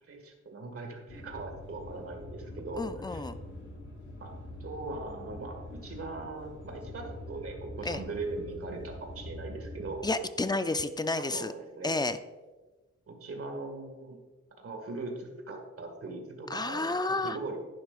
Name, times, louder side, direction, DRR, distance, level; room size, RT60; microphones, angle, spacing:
voice 1, 0.0-3.2 4.2-4.3 4.6-10.0 11.2-12.0 13.1-14.2 14.6-17.0 17.2-17.6, right 3 dB, 50° right, 3 dB, 1.9 m, -40 dB
sound 1, 1.1-10.0, left 1 dB, 80° left, 2.8 m, -44 dB
voice 2, 2.8-3.4 7.9-8.0 10.0-11.5 11.8-12.2 16.5-17.4, left 2 dB, 15° left, 11 dB, 0.4 m, -30 dB
10.5 x 10.5 x 2.5 m, 1.3 s
wide cardioid pair, 105°, 29 cm